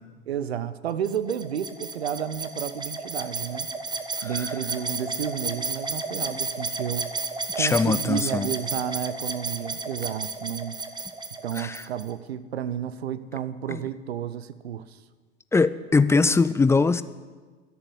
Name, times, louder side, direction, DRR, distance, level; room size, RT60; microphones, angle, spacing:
voice 1, 0.3-3.7 4.2-7.1 7.5-10.8 11.4-15.0, right 9 dB, 80° right, 14 dB, 0.7 m, -31 dB
sound 1, 1.0-12.1, right 3 dB, 15° right, 1.0 m, -32 dB
voice 2, 7.6-8.5 11.6-11.8 13.7-13.8 15.5-17.0, left 4 dB, 10° left, 14 dB, 0.4 m, -21 dB
12.5 x 6.9 x 9.6 m, 1.4 s
figure-of-eight pair, 75°, 31 cm